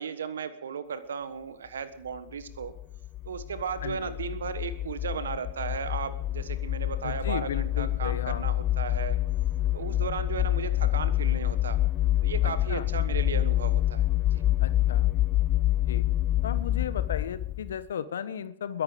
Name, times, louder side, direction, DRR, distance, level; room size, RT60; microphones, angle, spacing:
voice 1, 0.0-2.7 3.2-9.2 9.7-11.8 12.2-14.4, right 6 dB, 75° right, 12 dB, 1.3 m, -35 dB
sound 1, 2.5-17.8, left 14 dB, 35° left, 0.6 m, -27 dB
voice 2, 7.0-8.4 12.7-12.8 14.6-15.1 15.9-16.1 16.4-18.8, left 8 dB, 70° left, 13 dB, 1.1 m, -35 dB
21.5 x 11.5 x 5.2 m, 0.70 s
hypercardioid pair, 105°, 0 cm